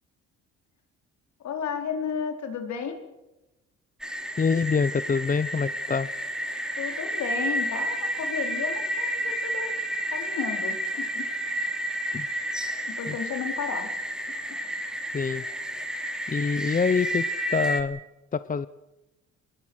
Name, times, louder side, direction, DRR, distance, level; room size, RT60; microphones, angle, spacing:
voice 1, 1.4-3.0 6.8-9.7 10.1-11.3 11.7-11.8 12.8-13.9, left 7 dB, 70° left, 5 dB, 4.5 m, -33 dB
sound 1, 4.0-17.8, right 1 dB, ahead, 3.0 m, -31 dB
voice 2, 4.4-6.1 12.1-12.3 13.1-13.2 15.1-15.4 16.3-18.0 18.3-18.7, left 5 dB, 25° left, 15 dB, 0.8 m, -25 dB
26.5 x 20.5 x 6.5 m, 0.99 s
cardioid pair, 90°, 30 cm